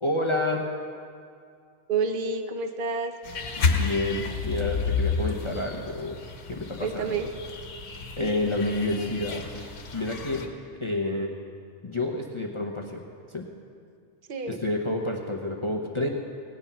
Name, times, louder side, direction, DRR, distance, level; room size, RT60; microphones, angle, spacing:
voice 1, 0.0-0.6 3.6-6.2 6.5-7.2 8.2-10.5 10.8-11.3 11.8-13.0 13.3-13.4 14.5-16.1, left 2 dB, 25° left, 0 dB, 0.9 m, -29 dB
voice 2, 1.9-3.1 6.8-7.3 14.3-14.6, right 4 dB, 50° right, 6 dB, 1.0 m, -28 dB
sound 1, 3.2-10.5, left 4 dB, 85° left, 1.4 m, -31 dB
17.0 x 9.8 x 5.6 m, 2.3 s
omnidirectional pair, 1.2 m